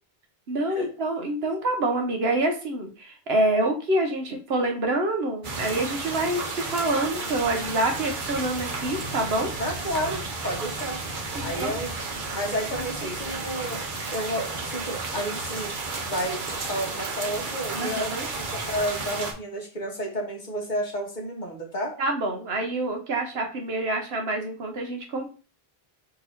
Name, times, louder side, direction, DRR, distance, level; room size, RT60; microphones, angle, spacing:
voice 1, 0.5-9.5 11.3-11.8 12.7-13.3 17.8-18.3 22.0-25.3, right 2 dB, 80° right, 3 dB, 1.2 m, -27 dB
sound 1, 5.4-19.3, right 3 dB, 55° right, 0.9 m, -32 dB
voice 2, 9.6-11.0 11.4-11.9 12.3-13.8 14.1-15.7 16.0-21.9, equal, 50° left, 0 dB, 1.4 m, -31 dB
3.8 x 2.9 x 4.3 m, 0.35 s
omnidirectional pair, 1.0 m